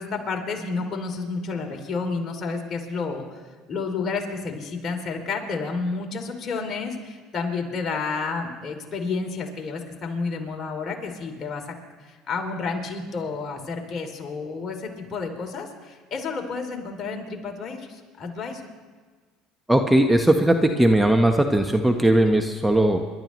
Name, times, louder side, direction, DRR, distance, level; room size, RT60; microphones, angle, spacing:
voice 1, 0.0-3.3 3.7-11.8 12.1-18.6, left 4 dB, 45° left, 3 dB, 2.8 m, -30 dB
voice 2, 19.7-23.0, right 1 dB, 5° right, 5 dB, 1.0 m, -18 dB
27.5 x 12.5 x 3.1 m, 1.5 s
supercardioid pair, 90°, 0 cm